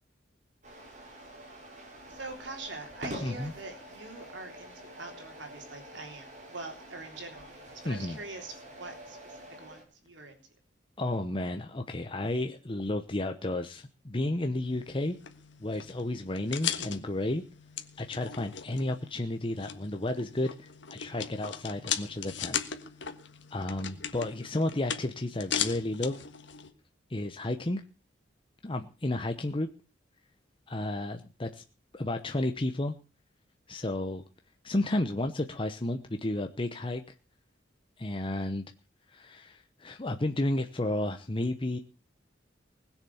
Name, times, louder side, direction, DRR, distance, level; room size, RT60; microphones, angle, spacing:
sound 1, 0.6-9.8, right 1 dB, 40° right, 5.2 m, -46 dB
voice 1, 2.1-9.3 9.6-10.4, right 3 dB, 70° right, 4 dB, 3.5 m, -44 dB
voice 2, 3.2-3.5 7.8-8.2 11.0-15.2 15.6-17.4 18.0-22.6 23.5-26.2 27.1-27.8 28.6-29.7 30.7-31.6 31.9-32.9 33.7-34.2 34.6-37.0 38.0-38.6 39.1-41.8, left 1 dB, 30° left, 6 dB, 0.9 m, -32 dB
sound 2, 14.6-26.7, left 8 dB, 70° left, 1.5 m, -38 dB
20.0 x 7.3 x 7.0 m, 0.36 s
head